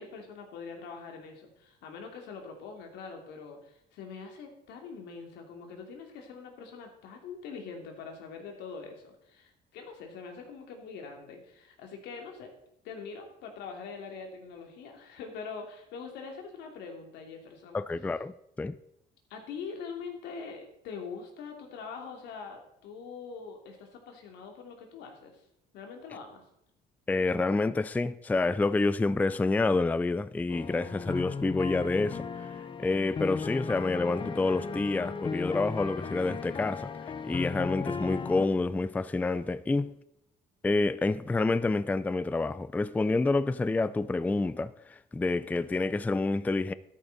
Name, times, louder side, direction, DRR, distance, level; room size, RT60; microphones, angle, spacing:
voice 1, 0.0-12.5 12.8-17.8 19.3-25.4 25.7-26.4, left 5 dB, 85° left, 2.7 m, -43 dB
voice 2, 17.7-18.8 27.1-32.3 32.8-36.9 37.2-39.9 40.6-46.7, left 3 dB, 10° left, 0.4 m, -28 dB
sound 1, 30.5-38.5, left 5 dB, 30° left, 0.7 m, -36 dB
13.0 x 11.0 x 4.0 m
cardioid pair, 110°, 17 cm